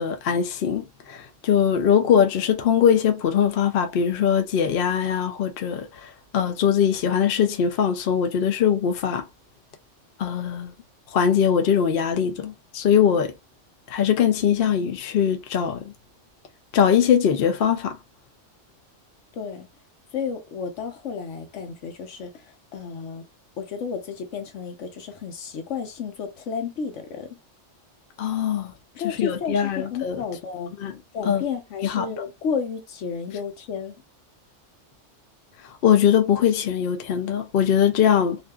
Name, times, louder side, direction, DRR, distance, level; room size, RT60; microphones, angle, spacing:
voice 1, 0.0-9.2 10.2-10.7 11.1-13.3 13.9-15.9 16.7-18.0 28.2-28.7 29.0-30.2 30.8-30.9 31.3-31.4 31.8-32.1 35.8-38.4, left 8 dB, 60° left, 0.7 m, -21 dB
voice 2, 19.3-19.7 20.1-23.2 23.6-27.3 28.9-30.7 31.1-34.0, left 6 dB, 75° left, 1.1 m, -32 dB
2.7 x 2.4 x 2.2 m
omnidirectional pair, 1.2 m